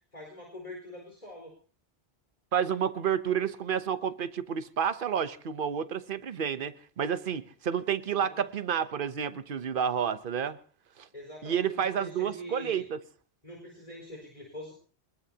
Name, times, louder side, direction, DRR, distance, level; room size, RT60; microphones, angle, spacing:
voice 1, 0.1-1.5 8.2-8.4 11.1-12.8 13.4-14.7, left 1 dB, 35° left, 4.7 m, -44 dB
voice 2, 2.5-10.6 11.0-11.1 11.4-13.0, right 8 dB, 55° right, 1.0 m, -30 dB
24.5 x 20.5 x 2.9 m
omnidirectional pair, 1.1 m